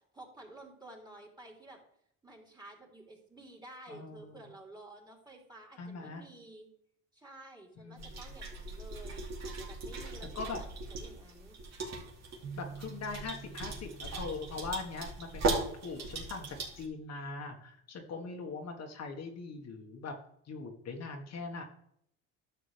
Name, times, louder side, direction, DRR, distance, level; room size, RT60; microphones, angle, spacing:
voice 1, 0.0-1.8 2.2-6.7 7.1-11.6, right 2 dB, 10° right, -2 dB, 3.4 m, -52 dB
voice 2, 3.9-4.4 5.8-6.2 7.8-8.1 10.3-10.6 12.6-20.2 20.5-21.6, left 4 dB, 45° left, 2 dB, 1.6 m, -41 dB
sound 1, 8.0-16.9, right 3 dB, 50° right, 3.1 m, -38 dB
sound 2, 12.4-16.1, right 6 dB, 70° right, 2.3 m, -49 dB
11.5 x 7.6 x 3.4 m, 0.70 s
supercardioid pair, 100°, 35 cm